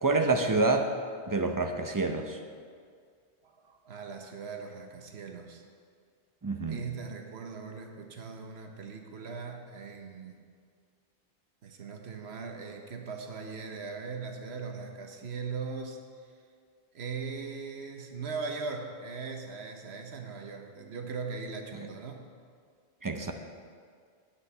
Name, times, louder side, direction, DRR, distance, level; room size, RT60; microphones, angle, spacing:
voice 1, 0.0-0.9 1.3-2.4 6.4-6.8 23.0-23.3, right 3 dB, 25° right, 5 dB, 0.5 m, -27 dB
voice 2, 3.4-5.6 6.7-10.4 11.6-16.3 16.9-22.2, right 5 dB, 70° right, 4 dB, 1.2 m, -39 dB
8.7 x 5.8 x 8.2 m, 2.1 s
omnidirectional pair, 1.1 m